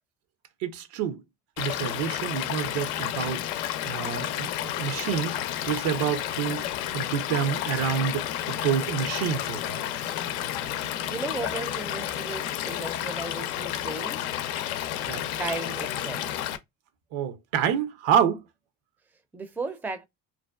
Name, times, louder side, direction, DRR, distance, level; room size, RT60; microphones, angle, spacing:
voice 1, 0.6-1.2 1.6-6.6 6.9-9.7 15.1-15.2 17.1-18.4, right 8 dB, 75° right, 0.7 m, -28 dB
Stream / Liquid, 1.6-16.6, left 11 dB, 80° left, 0.5 m, -31 dB
voice 2, 11.1-14.3 15.4-16.3 19.3-20.1, right 3 dB, 5° right, 0.4 m, -35 dB
2.6 x 2.2 x 2.2 m
hypercardioid pair, 65°, 44 cm